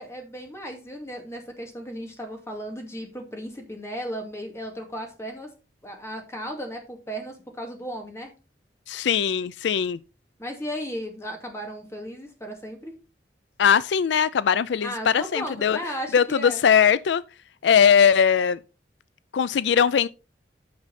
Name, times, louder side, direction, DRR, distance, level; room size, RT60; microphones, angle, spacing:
voice 1, 0.0-5.5 5.8-8.3 10.4-12.9 14.8-16.6, equal, 15° left, 2.5 m, -35 dB
voice 2, 8.9-10.0 13.6-15.8 16.1-17.2 17.6-18.6 19.3-20.1, left 7 dB, 80° left, 0.4 m, -20 dB
9.4 x 6.3 x 4.2 m
head